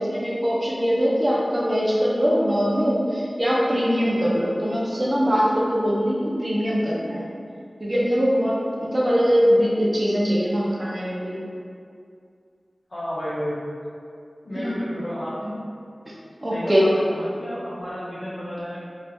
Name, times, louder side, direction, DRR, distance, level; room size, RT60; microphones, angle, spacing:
voice 1, 0.0-7.3 7.8-11.4 14.6-14.8 15.4-15.5 16.1-16.2 16.4-16.8, equal, 35° right, -5 dB, 0.6 m, -22 dB
voice 2, 12.9-13.6 14.4-15.4 16.5-18.8, equal, 75° left, -14 dB, 0.9 m, -31 dB
2.6 x 2.4 x 3.3 m, 2.4 s
wide cardioid pair, 60°, 0 cm